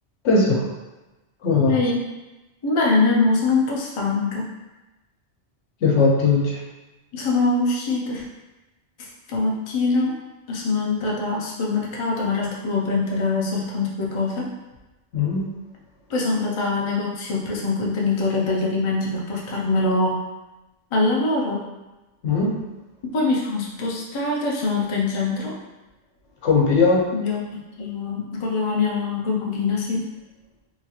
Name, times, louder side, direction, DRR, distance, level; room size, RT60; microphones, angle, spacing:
voice 1, 0.2-0.6 1.4-1.8 5.8-6.6 15.1-15.4 22.2-22.5 26.4-27.0, left 4 dB, 90° left, -2 dB, 1.0 m, -18 dB
voice 2, 1.7-2.0 2.6-4.5 7.1-8.2 9.0-10.1 10.5-14.5 16.1-20.2 20.9-21.6 23.0-25.5 27.1-30.0, left 3 dB, 45° left, -3 dB, 0.4 m, -23 dB
2.9 x 2.3 x 2.8 m, 1.1 s
omnidirectional pair, 1.1 m